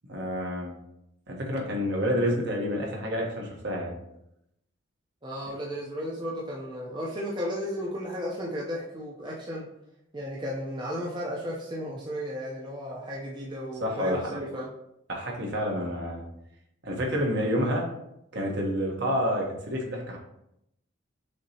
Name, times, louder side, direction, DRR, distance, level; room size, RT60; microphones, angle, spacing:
voice 1, 0.1-0.7 1.3-3.9 13.8-14.2 15.1-16.2 16.8-17.8 18.3-20.2, equal, 55° right, -1 dB, 1.0 m, -28 dB
voice 2, 5.2-9.7 10.1-14.7, equal, 25° right, -4 dB, 0.6 m, -34 dB
6.2 x 2.8 x 2.8 m, 0.81 s
head